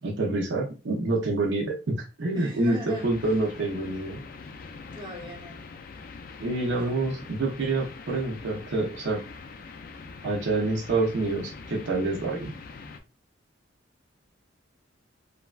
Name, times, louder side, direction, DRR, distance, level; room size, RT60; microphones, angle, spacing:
voice 1, 0.0-4.2 6.4-9.2 10.2-12.5, right 2 dB, 65° right, -1 dB, 0.6 m, -27 dB
voice 2, 2.3-3.1 4.9-5.6 6.8-6.9, left 1 dB, 20° right, -2 dB, 0.8 m, -38 dB
sound 1, 2.9-13.0, left 4 dB, 45° left, 0.3 m, -43 dB
3.2 x 2.2 x 2.3 m, 0.32 s
head